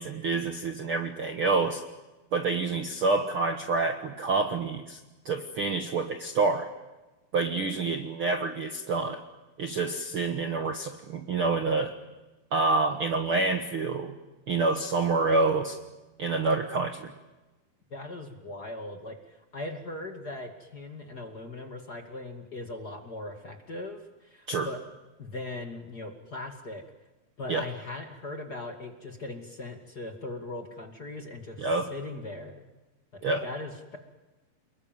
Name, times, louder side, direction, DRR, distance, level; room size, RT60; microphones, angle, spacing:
voice 1, 0.0-1.8 2.3-5.0 5.2-6.7 7.3-9.2 9.6-11.9 12.5-14.1 14.5-15.8 16.2-17.1 24.5-24.7 27.5-27.7 31.6-31.8 33.2-33.5, right 3 dB, 50° right, 6 dB, 1.7 m, -27 dB
voice 2, 17.9-24.8 25.2-26.8 27.4-32.7 33.1-34.0, left 2 dB, 30° left, 4 dB, 2.3 m, -39 dB
29.5 x 21.5 x 9.2 m, 1.1 s
omnidirectional pair, 4.3 m